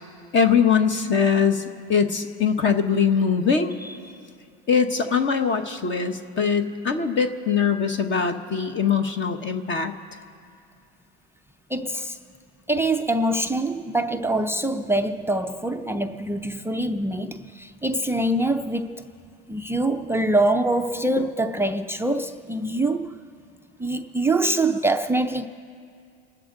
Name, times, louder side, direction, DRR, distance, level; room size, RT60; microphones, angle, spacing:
voice 1, 0.3-1.6 1.9-3.7 4.7-9.9, left 6 dB, 40° left, 1.1 m, -22 dB
voice 2, 11.7-12.2 12.7-19.1 19.5-23.2 23.8-25.5, right 1 dB, 10° right, 0.4 m, -24 dB
29.5 x 12.0 x 3.8 m
supercardioid pair, 115°, 30 cm